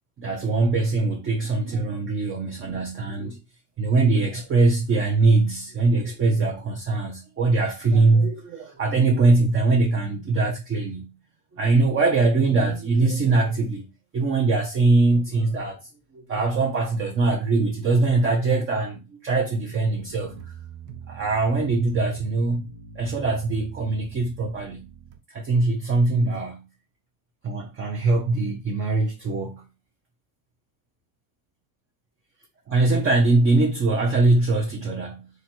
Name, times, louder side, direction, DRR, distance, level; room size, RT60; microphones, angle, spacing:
voice 1, 0.2-3.4 3.8-11.1 11.5-13.9 14.1-15.8 16.1-20.3 21.1-22.7 23.0-24.9 25.3-26.6 27.4-29.6 32.7-35.3, right 3 dB, 25° right, 0.8 m, -22 dB
sound 1, 19.9-25.2, right 7 dB, 55° right, 1.0 m, -42 dB
3.9 x 3.1 x 4.4 m
supercardioid pair, 135°, 49 cm